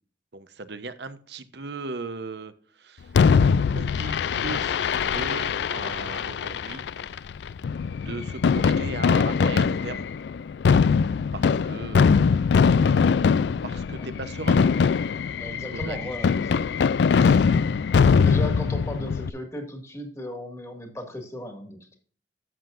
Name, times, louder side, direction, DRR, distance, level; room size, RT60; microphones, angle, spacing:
voice 1, 0.3-3.5 3.7-7.1 8.0-10.1 11.3-12.0 13.6-14.7 15.7-16.4, right 3 dB, 70° right, 11 dB, 0.9 m, -37 dB
Fireworks, 3.1-19.3, left 5 dB, 70° left, 0.3 m, -22 dB
voice 2, 15.3-16.5 17.1-17.4 17.9-22.0, equal, 15° left, 4 dB, 1.9 m, -36 dB
12.5 x 7.9 x 2.6 m, 0.43 s
head